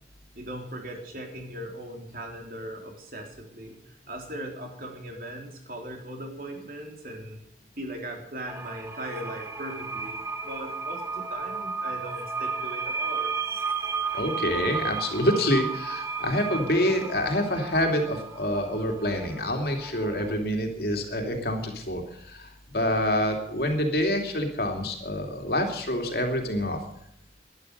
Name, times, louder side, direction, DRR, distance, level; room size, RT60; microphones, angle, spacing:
voice 1, 0.4-7.4 7.8-13.3, right 1 dB, 50° right, 2 dB, 3.7 m, -39 dB
sound 1, 8.5-20.3, right 5 dB, 15° right, 1.1 m, -34 dB
voice 2, 14.1-26.8, left 1 dB, 60° left, 3 dB, 2.8 m, -27 dB
12.0 x 11.5 x 6.7 m, 0.72 s
head